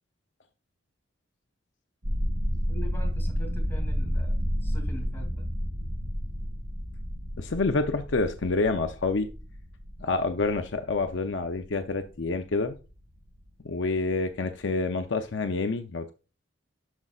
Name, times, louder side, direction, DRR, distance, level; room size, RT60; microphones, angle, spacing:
sound 1, 2.0-13.9 14.2-14.5 14.8-15.0, equal, 75° right, 4.2 m, -32 dB
voice 1, 2.7-4.3 4.6-5.4, equal, 10° left, 1 dB, 2.7 m, -42 dB
voice 2, 7.4-9.3 10.0-12.8 13.6-16.1, left 3 dB, 65° left, 7 dB, 0.6 m, -28 dB
12.0 x 5.4 x 2.4 m, 0.32 s
head